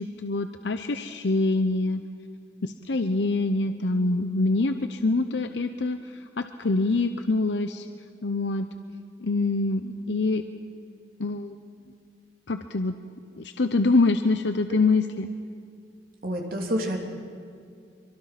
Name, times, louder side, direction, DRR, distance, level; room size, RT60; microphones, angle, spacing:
voice 1, 0.0-2.0 2.6-7.9 8.2-8.7 9.2-10.4 11.2-11.6 12.5-13.0 13.4-15.3, left 3 dB, 85° left, 8 dB, 0.8 m, -25 dB
voice 2, 16.2-17.0, equal, 55° right, 1 dB, 3.2 m, -28 dB
25.0 x 24.0 x 6.0 m, 2.4 s
head